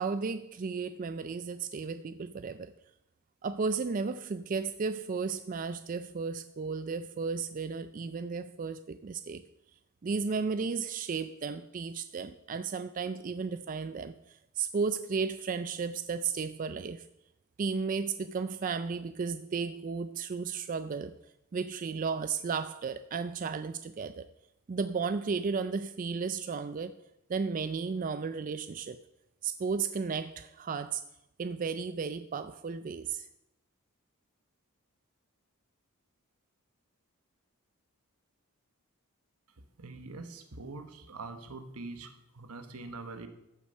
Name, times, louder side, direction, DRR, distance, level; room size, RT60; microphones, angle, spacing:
voice 1, 0.0-2.7 3.4-9.4 10.0-17.1 17.6-21.2 21.5-24.3 24.7-27.0 27.3-29.0 29.4-31.0 31.4-33.3, right 5 dB, 35° right, 11 dB, 0.4 m, -34 dB
voice 2, 39.8-43.3, right 3 dB, 80° right, 8 dB, 1.2 m, -44 dB
14.0 x 6.4 x 5.5 m, 0.87 s
head